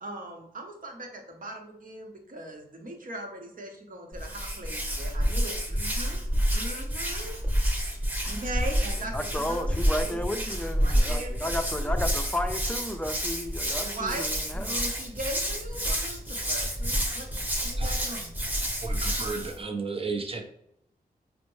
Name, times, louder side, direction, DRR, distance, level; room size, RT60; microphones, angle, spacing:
voice 1, 0.0-6.2 6.5-7.4 8.3-10.2 10.8-11.5 11.7-12.0 13.8-17.3 17.6-18.3, right 1 dB, 55° right, 1 dB, 0.9 m, -39 dB
Hands, 4.1-19.6, equal, 10° right, 1.0 m, -29 dB
voice 2, 9.0-14.9, left 1 dB, 5° left, 6 dB, 0.5 m, -33 dB
voice 3, 18.8-20.4, right 4 dB, 35° right, 4 dB, 0.7 m, -33 dB
4.2 x 2.1 x 3.1 m, 0.76 s
cardioid pair, 55°, 16 cm